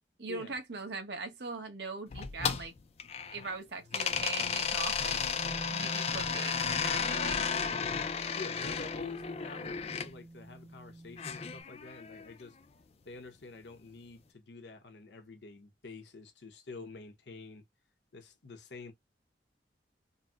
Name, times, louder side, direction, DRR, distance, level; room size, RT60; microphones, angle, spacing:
voice 1, 0.2-2.7 3.3-5.2 5.7-7.4, right 4 dB, 70° right, 1.0 m, -40 dB
sound 1, 2.1-3.5 3.9-10.1 11.2-12.3, left 6 dB, 35° left, 0.3 m, -33 dB
Bass guitar, 5.4-11.6, right 2 dB, 25° right, 0.5 m, -46 dB
voice 2, 8.4-12.6 13.0-17.6 18.1-18.9, left 4 dB, 75° left, 0.8 m, -47 dB
4.0 x 2.0 x 2.4 m
head